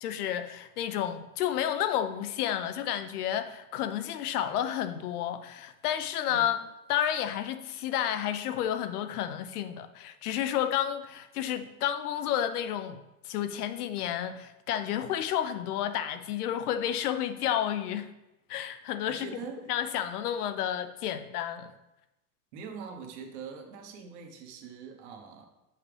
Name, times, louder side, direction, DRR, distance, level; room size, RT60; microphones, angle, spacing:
voice 1, 0.0-6.6 6.9-18.1 18.5-19.3 19.7-21.7, left 10 dB, 70° left, 0.8 m, -31 dB
voice 2, 19.1-19.7 22.5-25.5, right 5 dB, 45° right, 1.1 m, -43 dB
8.1 x 5.7 x 3.3 m
supercardioid pair, 165°, 47 cm